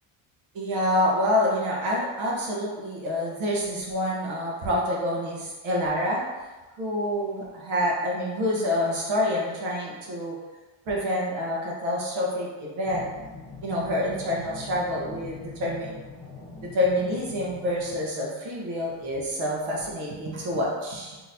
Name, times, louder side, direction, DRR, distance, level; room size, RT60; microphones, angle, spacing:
voice 1, 0.5-6.2 6.8-10.4 10.9-13.1 13.6-15.9 16.7-21.2, left 1 dB, 70° right, -3 dB, 1.1 m, -27 dB
sound 1, 12.8-18.1, left 3 dB, 45° left, 0.7 m, -42 dB
3.7 x 2.9 x 2.7 m, 1.2 s
cardioid pair, 120°, 49 cm